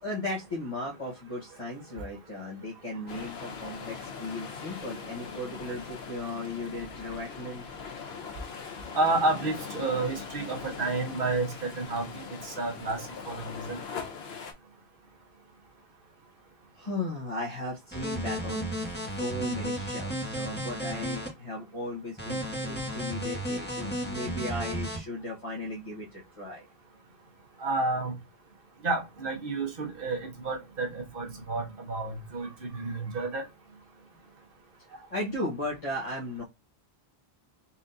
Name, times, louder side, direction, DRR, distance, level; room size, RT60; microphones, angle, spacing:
voice 1, 0.0-7.6 16.8-26.6 34.9-36.4, left 1 dB, 35° left, 1.2 m, -36 dB
sound 1, 3.1-14.5, left 5 dB, 80° left, 1.1 m, -41 dB
voice 2, 8.9-13.0 13.3-13.8 27.6-28.1 28.8-33.4, right 3 dB, 60° right, 1.1 m, -30 dB
sound 2, 17.9-21.3 22.2-25.0, equal, 10° left, 1.6 m, -33 dB
4.2 x 3.5 x 2.6 m
omnidirectional pair, 1.0 m